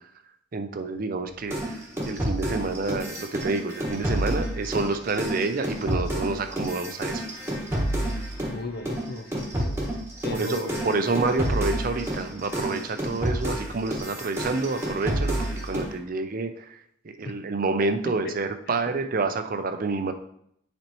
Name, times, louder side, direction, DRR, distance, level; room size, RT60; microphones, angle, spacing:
voice 1, 0.5-1.8 2.1-7.2 10.3-16.8 17.0-20.1, right 3 dB, 45° right, 8 dB, 0.5 m, -28 dB
sound 1, 1.5-8.6 8.8-15.9, right 1 dB, 15° right, 1.5 m, -29 dB
voice 2, 8.5-9.8 10.2-11.1 18.2-18.3 18.7-18.8, left 2 dB, 50° left, 5 dB, 0.7 m, -35 dB
9.8 x 4.3 x 3.0 m, 0.72 s
head